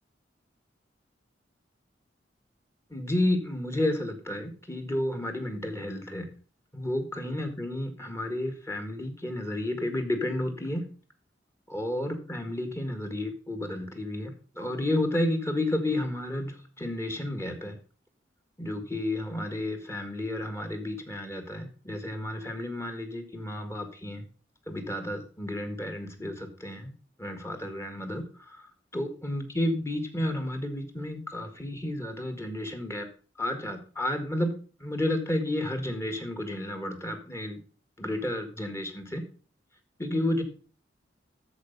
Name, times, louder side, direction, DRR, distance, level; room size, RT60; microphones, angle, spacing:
voice 1, 2.9-6.3 6.7-10.9 11.7-17.8 18.6-24.2 24.7-26.9 27.2-28.7 28.9-33.1 33.4-37.6 38.0-39.2 40.0-40.4, left 1 dB, 15° left, 5 dB, 1.8 m, -31 dB
13.0 x 4.9 x 5.5 m, 0.39 s
head